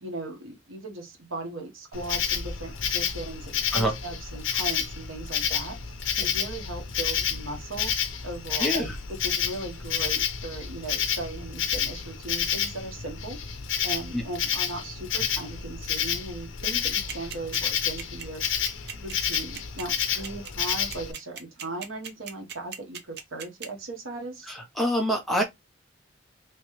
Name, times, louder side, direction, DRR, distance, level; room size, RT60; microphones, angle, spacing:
voice 1, 0.0-7.9 8.2-8.8 9.2-13.4 13.8-18.4 18.9-24.5, right 2 dB, 80° right, 1.3 m, -38 dB
Insect, 1.9-21.1, left 8 dB, 75° left, 0.7 m, -30 dB
voice 2, 8.6-8.9 14.1-14.2 24.5-25.4, equal, ahead, 0.9 m, -26 dB
sound 1, 17.1-23.7, right 7 dB, 55° right, 0.7 m, -37 dB
3.1 x 3.0 x 3.1 m
head